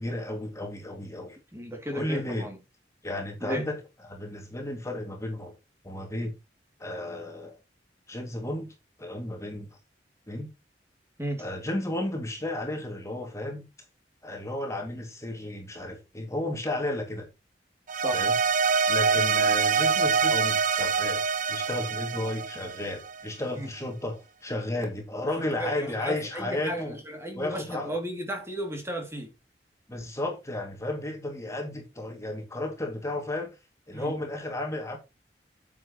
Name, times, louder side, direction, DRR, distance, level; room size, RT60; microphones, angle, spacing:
voice 1, 0.0-1.4 1.9-2.5 3.0-3.8 4.1-5.5 5.8-6.3 6.8-7.6 8.1-9.7 10.3-10.5 11.4-13.6 14.2-17.3 18.1-18.3 18.9-21.2 21.5-27.0 27.3-27.9 29.9-33.5 33.9-35.0, left 1 dB, 15° left, 2.2 m, -33 dB
voice 2, 1.5-2.6 3.4-3.6 11.2-11.4 18.0-18.2 23.5-23.7 25.6-29.3 33.9-34.2, equal, 15° right, 2.5 m, -34 dB
sound 1, 17.9-23.2, right 5 dB, 50° right, 0.6 m, -25 dB
9.2 x 7.4 x 3.0 m
head